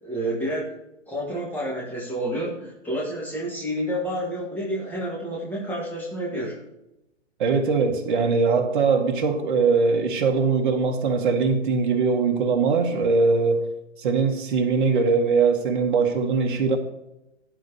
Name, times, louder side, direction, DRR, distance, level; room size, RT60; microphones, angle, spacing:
voice 1, 0.0-0.7 1.1-6.6, equal, 5° left, -2 dB, 1.4 m, -29 dB
voice 2, 7.4-13.6 14.0-16.8, right 4 dB, 45° right, 4 dB, 1.5 m, -21 dB
11.0 x 4.1 x 6.6 m, 0.91 s
hypercardioid pair, 145°, 37 cm